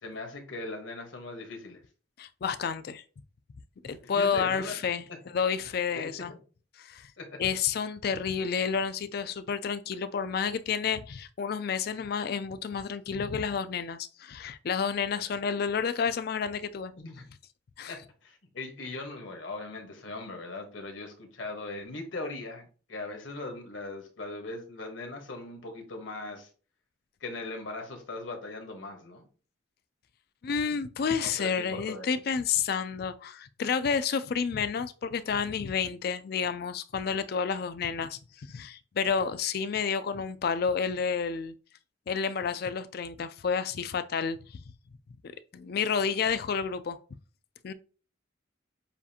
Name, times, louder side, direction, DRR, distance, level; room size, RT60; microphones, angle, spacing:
voice 1, 0.0-1.8 4.0-4.8 5.9-6.4 7.2-7.4 17.0-17.3 17.9-26.5 27.2-29.3 31.2-32.1, left 2 dB, 70° left, 1.2 m, -39 dB
voice 2, 2.2-3.0 3.8-6.3 6.8-7.1 7.4-16.9 17.8-17.9 30.4-41.5 42.1-44.6 45.5-47.0 47.6-47.7, left 6 dB, 50° left, 0.3 m, -30 dB
7.0 x 2.5 x 2.8 m
head